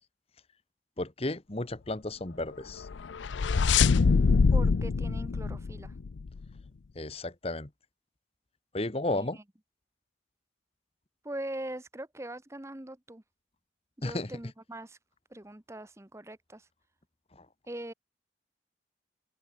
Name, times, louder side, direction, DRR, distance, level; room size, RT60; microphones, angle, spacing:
voice 1, 1.0-2.9 6.9-7.7 8.7-9.4 14.0-14.3 17.3-17.5, left 2 dB, 30° left, 1.2 m, -33 dB
sound 1, 2.8-6.4, left 5 dB, 70° left, 0.5 m, -24 dB
voice 2, 4.5-5.9 9.1-9.2 11.2-13.2 14.0-15.0 15.3-16.7 17.7-17.9, right 1 dB, 15° right, 0.9 m, -41 dB
open air
head